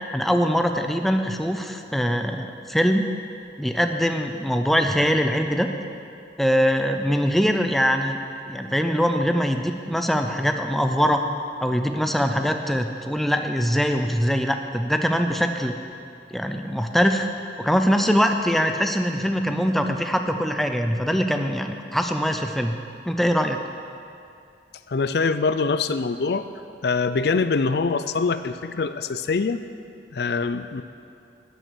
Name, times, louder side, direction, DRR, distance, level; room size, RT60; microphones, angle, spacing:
voice 1, 0.1-3.0 3.6-5.7 6.4-8.2 8.5-11.2 11.6-15.8 16.3-17.3 17.6-22.7 23.1-23.6, equal, ahead, 5 dB, 0.5 m, -22 dB
voice 2, 24.9-26.5 26.8-29.6 30.1-30.8, left 4 dB, 65° left, 11 dB, 0.4 m, -24 dB
10.5 x 9.2 x 6.8 m, 2.5 s
head